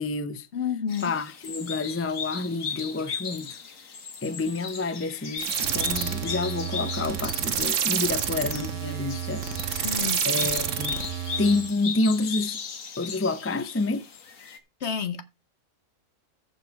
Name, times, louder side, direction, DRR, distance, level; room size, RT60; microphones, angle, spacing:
voice 1, 0.0-0.5 1.0-3.6 4.2-11.0 11.4-12.6 13.0-14.0, left 3 dB, 15° left, 0.4 m, -29 dB
voice 2, 0.5-1.1 9.8-10.5 14.8-15.2, left 7 dB, 60° left, 1.3 m, -30 dB
sound 1, 0.9-14.6, left 6 dB, 90° left, 1.8 m, -37 dB
sound 2, 5.4-11.7, right 8 dB, 70° right, 1.2 m, -29 dB
14.0 x 5.5 x 4.6 m
omnidirectional pair, 1.3 m